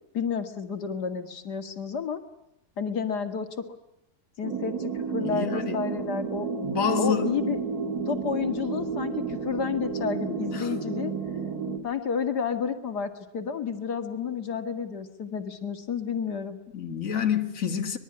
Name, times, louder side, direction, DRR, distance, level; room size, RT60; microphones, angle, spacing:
voice 1, 0.1-2.2 2.8-3.5 4.4-6.5 7.0-7.6 8.1-11.1 11.8-16.6, left 6 dB, 90° left, 2.5 m, -30 dB
sound 1, 4.4-11.8, right 5 dB, 65° right, 2.9 m, -31 dB
voice 2, 5.2-5.8 6.6-7.3 10.5-10.7 16.7-18.0, left 7 dB, 55° left, 2.4 m, -28 dB
25.0 x 21.5 x 9.8 m
omnidirectional pair, 1.7 m